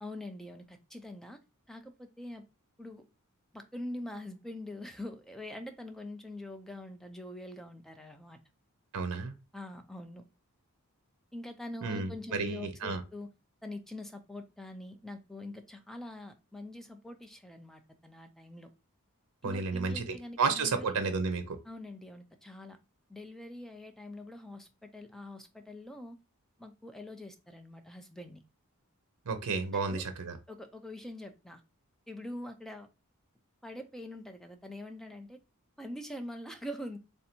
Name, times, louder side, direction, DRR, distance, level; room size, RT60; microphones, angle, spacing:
voice 1, 0.0-1.4 1.7-2.4 2.8-3.0 3.5-8.4 9.5-10.2 11.3-13.3 13.6-18.7 19.4-20.9 21.7-22.8 23.1-26.2 26.6-28.4 29.9-30.1 30.5-31.6 32.1-32.9 33.6-35.4 35.8-37.0, left 1 dB, ahead, 0.4 m, -44 dB
voice 2, 8.9-9.3 11.8-13.0 19.4-21.6 29.3-30.4, right 4 dB, 90° right, 0.6 m, -32 dB
3.3 x 2.7 x 4.3 m
head